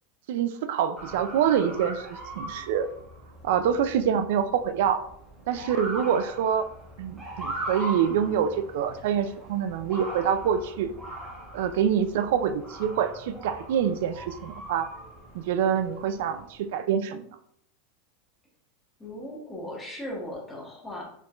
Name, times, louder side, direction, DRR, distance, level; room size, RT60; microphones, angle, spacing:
voice 1, 0.3-2.9 3.4-5.0 5.5-6.7 7.0-10.9 11.5-14.9 15.3-17.2, right 8 dB, 65° right, 10 dB, 0.4 m, -26 dB
Motor vehicle (road) / Siren, 1.0-16.5, right 1 dB, 10° right, 1.2 m, -40 dB
voice 2, 19.0-21.0, left 1 dB, 10° left, -4 dB, 1.2 m, -37 dB
4.6 x 4.6 x 2.5 m, 0.69 s
supercardioid pair, 170°, 0 cm